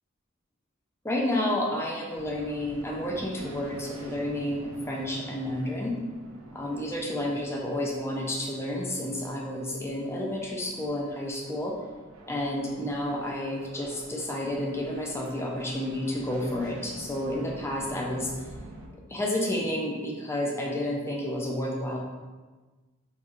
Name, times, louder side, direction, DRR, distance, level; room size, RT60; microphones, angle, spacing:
voice 1, 1.0-6.0 6.5-11.8 12.3-18.3 19.1-22.0, left 1 dB, 10° left, -1 dB, 0.4 m, -30 dB
sound 1, 2.1-18.9, right 1 dB, 90° right, 0.5 m, -46 dB
4.2 x 2.5 x 2.4 m, 1.3 s
head